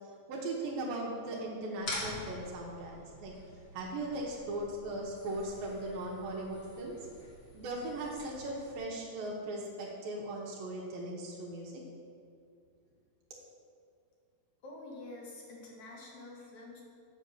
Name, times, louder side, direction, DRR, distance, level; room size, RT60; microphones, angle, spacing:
voice 1, 0.3-3.3 3.7-7.0 7.5-11.7, right 1 dB, 80° right, -3 dB, 2.8 m, -38 dB
sound 1, 1.8-8.8, left 1 dB, 35° left, 2.0 m, -46 dB
voice 2, 14.6-16.8, left 2 dB, 60° left, -2 dB, 2.4 m, -47 dB
7.9 x 5.2 x 6.9 m, 2.4 s
omnidirectional pair, 4.0 m